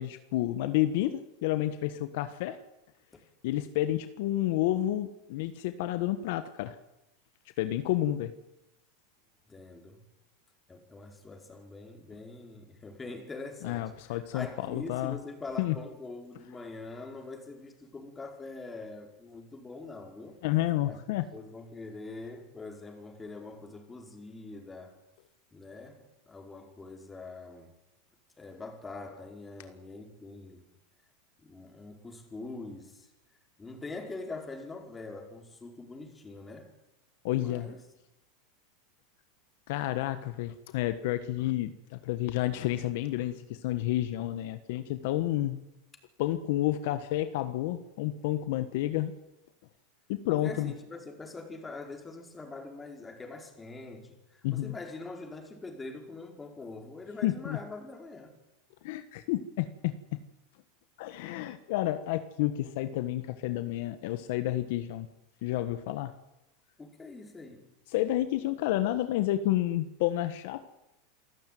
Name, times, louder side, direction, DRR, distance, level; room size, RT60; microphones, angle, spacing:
voice 1, 0.0-2.6 3.4-6.7 7.6-8.3 13.6-15.2 15.6-15.7 20.4-21.2 37.2-37.7 39.7-45.6 46.2-49.1 50.1-50.7 54.4-54.7 57.2-57.6 58.8-60.2 61.0-65.1 65.4-66.1 67.9-70.6, left 14 dB, 65° left, 1.4 m, -30 dB
voice 2, 9.5-10.1 10.7-20.4 20.9-21.0 21.3-25.0 25.5-27.7 28.4-30.7 31.4-33.1 33.6-36.7 37.3-37.8 50.3-58.3 66.8-67.7, left 3 dB, 15° left, 4.9 m, -44 dB
27.5 x 14.0 x 9.4 m
supercardioid pair, 120°, 0 cm